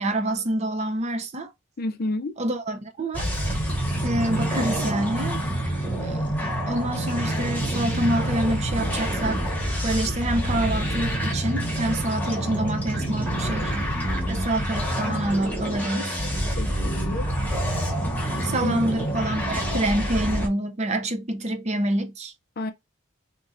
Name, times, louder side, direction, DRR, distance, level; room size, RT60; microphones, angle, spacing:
voice 1, 0.0-1.5 2.4-3.3 4.0-5.4 6.0-6.3 6.7-9.4 9.8-13.7 14.3-16.1 18.4-22.3, right 1 dB, 30° right, 0.5 m, -27 dB
voice 2, 1.8-2.4 16.6-17.3 18.6-18.8 22.6-22.7, left 1 dB, 45° left, 0.5 m, -30 dB
sound 1, 3.1-20.5, right 1 dB, 10° left, 1.1 m, -27 dB
3.7 x 3.0 x 2.6 m
head